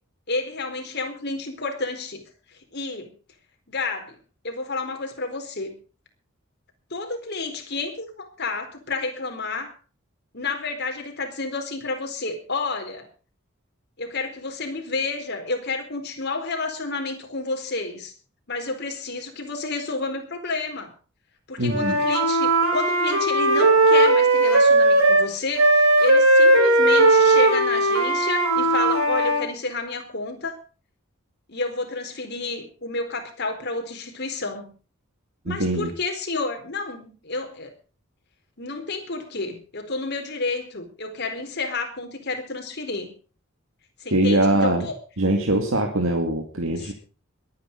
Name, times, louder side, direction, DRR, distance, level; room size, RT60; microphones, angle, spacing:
voice 1, 0.3-2.2 2.7-3.1 3.7-4.2 4.4-5.8 6.9-9.7 10.3-13.1 14.0-18.1 18.5-20.9 21.5-30.6 31.5-34.7 35.5-37.7 38.6-43.1 44.0-44.9 46.7-46.9, left 3 dB, 50° left, 5 dB, 4.2 m, -30 dB
voice 2, 21.6-22.0 35.5-35.9 44.1-44.9 45.2-46.9, right 1 dB, 70° right, 3 dB, 2.5 m, -22 dB
Wind instrument woodwind instrument, 21.6-25.3 25.6-29.4, right 2 dB, 85° right, 6.2 m, -18 dB
22.0 x 9.5 x 5.4 m, 0.37 s
head